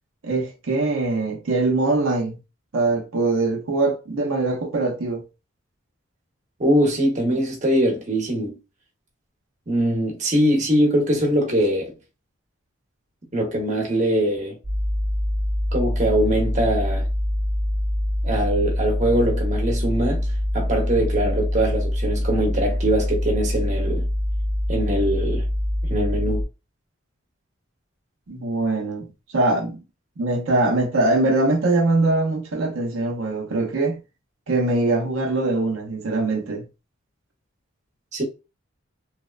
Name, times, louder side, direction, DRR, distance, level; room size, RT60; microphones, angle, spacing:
voice 1, 0.2-2.4 2.7-5.2 28.3-29.8 30.2-34.0 34.5-36.6, right 2 dB, 70° right, 0.6 m, -22 dB
voice 2, 6.6-8.6 9.7-11.9 13.3-14.6 15.7-17.1 18.2-20.3 20.5-24.1 24.7-25.4 25.8-26.4 38.1-38.2, right 1 dB, 35° right, 0.8 m, -22 dB
sound 1, 14.6-26.5, left 1 dB, ahead, 1.0 m, -24 dB
2.9 x 2.0 x 2.3 m
head